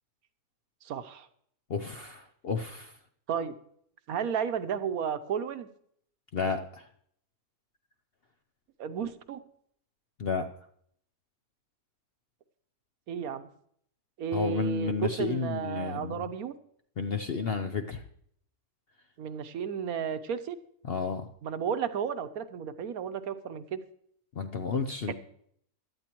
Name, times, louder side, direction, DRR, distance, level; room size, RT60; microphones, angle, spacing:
voice 1, 0.8-1.3 3.3-3.5 4.1-5.7 8.8-9.4 13.1-13.5 14.2-16.5 19.2-20.6 21.4-23.8, right 7 dB, 70° right, 10 dB, 1.2 m, -33 dB
voice 2, 1.7-3.0 6.3-6.9 10.2-10.5 14.3-16.3 17.0-18.0 20.8-21.3 24.3-25.1, left 5 dB, 55° left, 6 dB, 0.7 m, -32 dB
17.0 x 12.0 x 3.0 m, 0.67 s
omnidirectional pair, 1.7 m